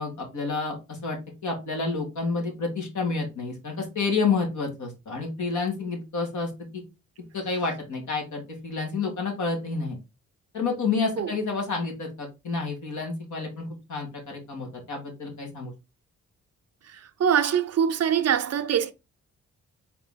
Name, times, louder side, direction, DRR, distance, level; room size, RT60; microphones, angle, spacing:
voice 1, 0.0-6.8 7.3-10.0 10.5-15.7, left 4 dB, 75° left, 1.9 m, -29 dB
voice 2, 16.9-18.9, right 8 dB, 55° right, 0.6 m, -24 dB
4.2 x 2.9 x 3.6 m
cardioid pair, 70°, 30 cm